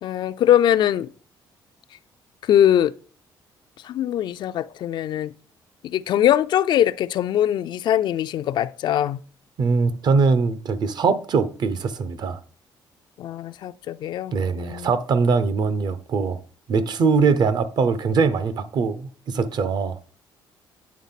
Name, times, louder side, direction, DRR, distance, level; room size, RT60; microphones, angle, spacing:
voice 1, 0.0-1.1 2.4-2.9 3.8-5.3 5.8-9.2 13.2-14.9, left 11 dB, 65° left, 0.3 m, -21 dB
voice 2, 9.6-12.4 14.3-16.4 16.7-20.0, right 4 dB, 55° right, 0.7 m, -22 dB
8.5 x 3.4 x 5.8 m
cardioid pair, 130°, 8 cm